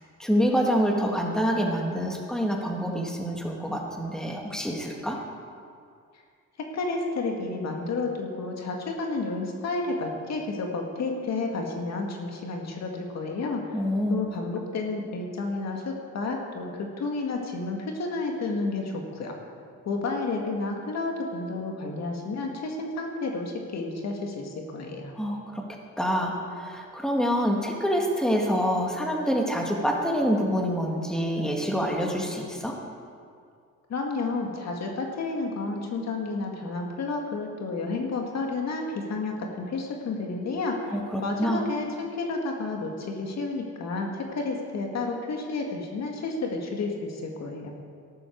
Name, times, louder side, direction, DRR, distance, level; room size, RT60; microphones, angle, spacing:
voice 1, 0.2-5.2 13.7-14.2 25.2-25.6 26.0-32.8 40.9-41.6, equal, ahead, 0 dB, 2.0 m, -26 dB
voice 2, 6.6-13.7 14.1-19.4 19.8-25.1 33.9-47.7, left 3 dB, 60° left, 1 dB, 2.0 m, -31 dB
13.5 x 12.0 x 4.7 m, 2.3 s
cardioid pair, 90°, 30 cm